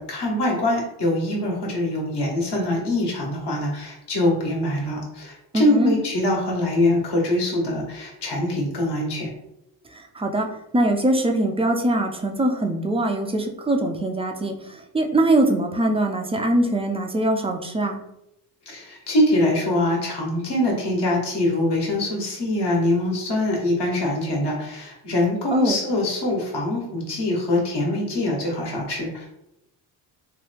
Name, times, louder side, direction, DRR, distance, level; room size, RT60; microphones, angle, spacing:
voice 1, 0.0-9.3 18.7-29.3, left 1 dB, 55° left, -2 dB, 1.4 m, -23 dB
voice 2, 5.5-5.9 10.1-10.5 10.7-14.5 14.9-18.0 25.5-25.8, right 1 dB, 15° right, 3 dB, 0.4 m, -22 dB
3.0 x 2.2 x 3.3 m, 0.84 s
cardioid pair, 75°, 47 cm